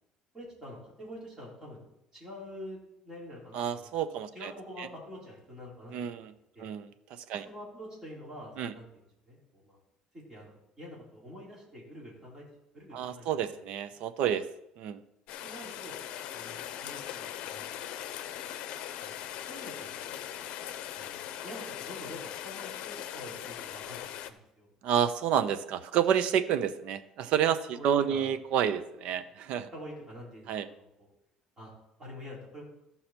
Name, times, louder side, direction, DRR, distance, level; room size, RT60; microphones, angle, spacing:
voice 1, 0.3-1.8 2.1-3.9 4.3-6.3 6.6-6.7 7.3-9.8 10.1-12.5 12.7-13.3 15.4-16.0 16.3-17.8 18.1-18.5 19.0-19.2 19.5-20.0 20.3-20.4 21.0-24.7 27.7-28.4 29.7-31.1 31.6-31.7 32.0-32.6, equal, 20° right, -5 dB, 3.8 m, -46 dB
voice 2, 3.5-4.5 4.8-4.9 5.9-6.3 6.6-6.8 7.1-7.4 8.6-8.7 12.9-14.4 14.8-15.0 24.8-29.7 30.5-30.7, right 9 dB, 60° right, 12 dB, 0.7 m, -29 dB
Rain, 15.3-24.3, left 11 dB, 65° left, 0.7 m, -40 dB
14.0 x 5.6 x 4.4 m, 0.84 s
cardioid pair, 160°, 2 cm